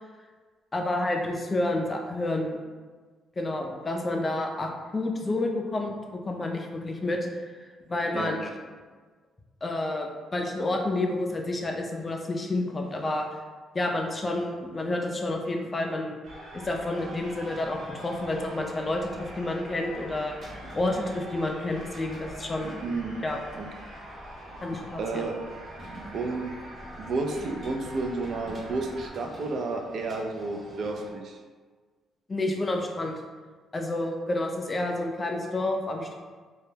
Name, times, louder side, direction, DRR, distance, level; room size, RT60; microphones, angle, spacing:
voice 1, 0.7-2.6 3.4-8.5 9.6-13.2 13.7-16.2 16.5-20.3 20.7-22.8 23.2-23.4 24.6-25.3 32.3-33.2 33.7-36.2, left 2 dB, 30° left, 2 dB, 0.3 m, -29 dB
sound 1, 16.2-29.1, right 1 dB, 85° right, 0.8 m, -44 dB
sound 2, 16.9-31.1, right 1 dB, 35° right, 0.7 m, -47 dB
voice 2, 22.8-23.2 23.6-23.7 25.0-25.3 26.1-26.5 27.0-31.4, right 3 dB, 60° right, 3 dB, 0.3 m, -31 dB
2.2 x 2.0 x 3.1 m, 1.5 s
cardioid pair, 90°, 0 cm